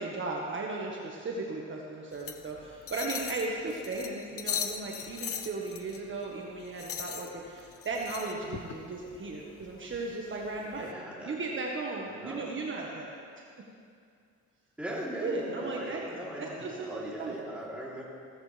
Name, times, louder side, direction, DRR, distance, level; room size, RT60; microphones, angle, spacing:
voice 1, 0.0-10.9 11.2-13.1 15.2-16.0 16.4-17.3, right 3 dB, 40° right, -2 dB, 1.5 m, -36 dB
sound 1, 2.1-10.9, left 7 dB, 50° left, 1.0 m, -40 dB
voice 2, 10.7-11.3 12.0-12.5 14.8-18.0, right 1 dB, 5° right, -6 dB, 3.5 m, -39 dB
16.0 x 14.5 x 3.5 m, 2.3 s
cardioid pair, 90°, 30 cm